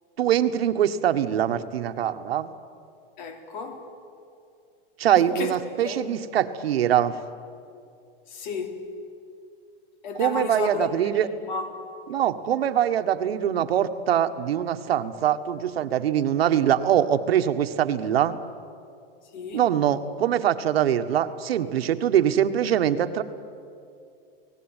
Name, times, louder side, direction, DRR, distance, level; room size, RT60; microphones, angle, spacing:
voice 1, 0.2-2.5 5.0-7.1 10.1-11.3 12.1-18.4 19.5-23.2, right 10 dB, 80° right, 1.6 m, -23 dB
voice 2, 3.2-3.8 5.2-5.5 5.8-6.2 8.3-8.8 10.0-11.7 19.3-19.7, left 4 dB, 50° left, 3.5 m, -33 dB
29.5 x 19.0 x 9.1 m
supercardioid pair, 165°, 30 cm